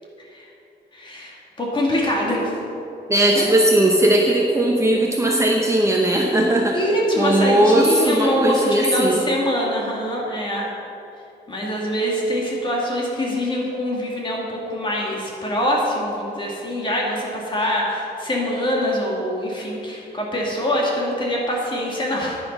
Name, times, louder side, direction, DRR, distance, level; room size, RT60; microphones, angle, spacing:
voice 1, 0.9-2.6 3.3-3.5 6.7-10.7 11.5-22.4, equal, 25° left, -3 dB, 2.3 m, -24 dB
voice 2, 3.1-6.8 7.2-9.2, right 1 dB, 15° right, -1 dB, 0.9 m, -18 dB
10.5 x 10.0 x 5.4 m, 2.8 s
wide cardioid pair, 170°, 18 cm